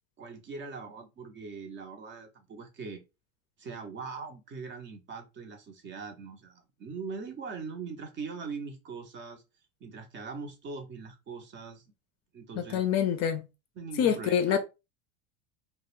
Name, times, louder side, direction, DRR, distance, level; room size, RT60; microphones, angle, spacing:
voice 1, 0.2-3.0 3.6-9.4 9.8-11.8 12.3-13.1 13.8-14.5, right 4 dB, 30° right, 0.5 m, -41 dB
voice 2, 12.6-13.4 14.0-14.6, left 8 dB, 40° left, 0.4 m, -26 dB
2.2 x 2.0 x 3.0 m
supercardioid pair, 110°, 39 cm